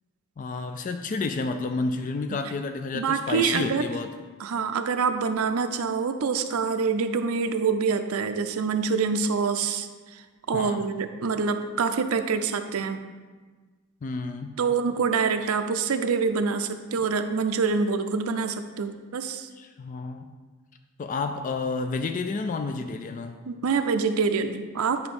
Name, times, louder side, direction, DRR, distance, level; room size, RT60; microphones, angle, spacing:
voice 1, 0.4-4.1 10.5-10.9 14.0-14.6 16.4-16.6 19.6-20.3 21.0-23.4, left 3 dB, 35° left, 7 dB, 0.3 m, -30 dB
voice 2, 2.9-3.9 4.4-10.2 10.5-13.0 14.6-19.5 23.5-25.0, right 5 dB, 80° right, 8 dB, 0.5 m, -26 dB
9.7 x 3.5 x 5.3 m, 1.4 s
head